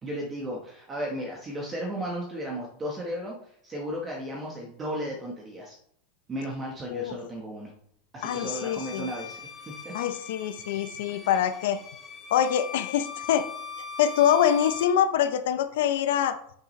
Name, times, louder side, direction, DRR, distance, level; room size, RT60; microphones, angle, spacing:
voice 1, 0.0-3.3 3.6-5.8 6.3-7.7 8.1-9.4 9.8-9.9, equal, 20° right, -1 dB, 1.2 m, -34 dB
voice 2, 8.2-9.1 9.9-11.8 12.3-13.5 14.0-16.4, left 9 dB, 75° left, 10 dB, 0.6 m, -25 dB
Bowed string instrument, 8.2-15.0, left 4 dB, 15° left, 1.8 m, -40 dB
9.6 x 6.1 x 3.2 m, 0.66 s
supercardioid pair, 155°, 0 cm